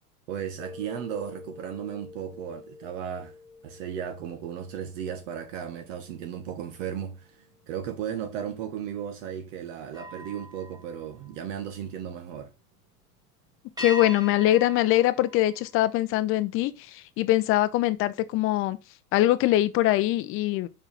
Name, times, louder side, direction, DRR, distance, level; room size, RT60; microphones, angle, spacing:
voice 1, 0.3-3.3 3.6-12.5, right 9 dB, 55° right, 1.2 m, -35 dB
sound 1, 0.6-6.1 6.6-6.9 9.9-12.1 13.8-16.3, left 1 dB, 10° right, 2.1 m, -43 dB
voice 2, 13.8-18.8 19.1-20.7, left 15 dB, 30° left, 0.6 m, -23 dB
5.6 x 4.6 x 5.1 m
supercardioid pair, 130°, 45 cm